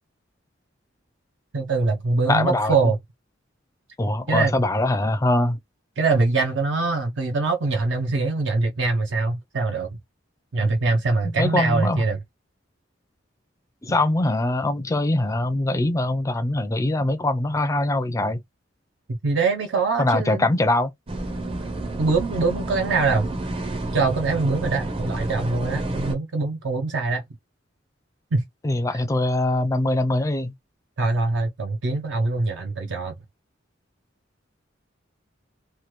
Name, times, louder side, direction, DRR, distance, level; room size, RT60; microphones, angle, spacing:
voice 1, 1.5-3.0 4.3-4.5 6.0-9.9 10.5-12.2 19.1-20.5 22.0-23.3 23.9-27.2 28.3-28.4 31.0-33.1, right 3 dB, 70° right, 0.5 m, -23 dB
voice 2, 2.3-2.9 4.0-5.6 11.4-12.0 13.8-18.4 20.0-20.9 28.6-30.5, left 2 dB, 15° left, 0.4 m, -22 dB
sound 1, 21.1-26.2, right 1 dB, 30° right, 0.6 m, -29 dB
3.1 x 2.2 x 3.0 m
head